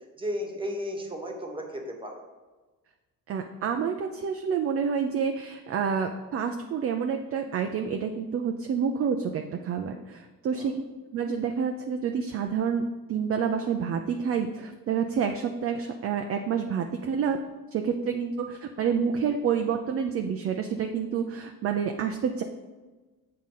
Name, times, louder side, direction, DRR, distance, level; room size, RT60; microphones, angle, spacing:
voice 1, 0.2-2.2 10.5-10.7, equal, 15° right, 2 dB, 1.2 m, -34 dB
voice 2, 3.3-10.8 11.1-12.8 13.1-17.4 17.7-22.4, right 7 dB, 40° right, 5 dB, 0.5 m, -28 dB
7.5 x 3.8 x 5.6 m, 1.2 s
cardioid pair, 135°, 36 cm